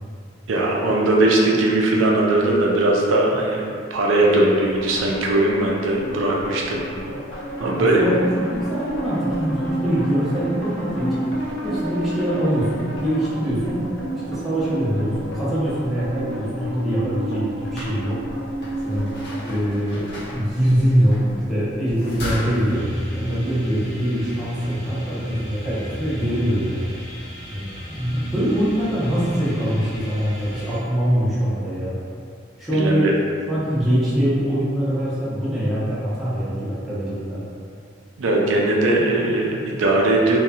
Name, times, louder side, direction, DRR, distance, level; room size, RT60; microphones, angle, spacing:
voice 1, 0.5-3.6 3.9-7.1 7.6-8.1 32.7-33.1 38.2-40.4, right 2 dB, 85° right, -2 dB, 0.4 m, -19 dB
sound 1, 4.5-19.4, right 1 dB, 85° left, 0.6 m, -31 dB
voice 2, 7.6-11.3 11.6-13.8 14.1-18.2 18.8-19.1 19.4-20.0 20.3-26.9 27.5-32.0 32.6-33.0 33.5-37.4, equal, ahead, -12 dB, 0.7 m, -23 dB
sound 2, 17.6-22.7, left 1 dB, 60° left, 0.8 m, -35 dB
sound 3, 22.7-30.8, equal, 35° left, 1.0 m, -36 dB
2.7 x 2.2 x 2.4 m, 2.2 s
head